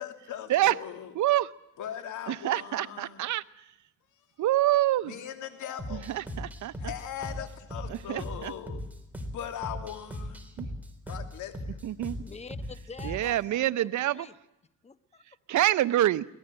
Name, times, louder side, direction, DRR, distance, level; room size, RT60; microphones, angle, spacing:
voice 1, 0.0-1.1 1.8-3.2 5.0-6.2 6.8-8.8 9.3-10.5 11.1-11.8, left 9 dB, 80° left, 7 dB, 2.9 m, -39 dB
voice 2, 1.2-1.5 2.3-3.4 4.4-5.1 5.9-6.7 7.9-8.5 10.6-10.7 11.8-12.2 13.0-14.3 15.5-16.2, right 14 dB, 70° right, 16 dB, 0.9 m, -26 dB
sound 1, 5.8-13.4, left 1 dB, 5° right, 4.0 m, -39 dB
voice 3, 12.2-13.4 13.8-14.3 14.8-15.2, left 4 dB, 20° left, 13 dB, 1.1 m, -45 dB
23.0 x 19.0 x 8.9 m, 0.88 s
cardioid pair, 90°, 30 cm